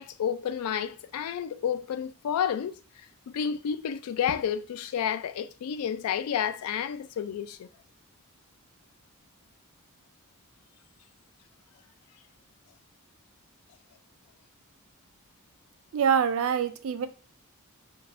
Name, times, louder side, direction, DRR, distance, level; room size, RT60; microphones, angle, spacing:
voice 1, 0.0-2.7 3.3-7.7, left 8 dB, 80° left, 0.3 m, -30 dB
voice 2, 15.9-17.1, right 7 dB, 65° right, 0.3 m, -25 dB
2.5 x 2.2 x 3.2 m
head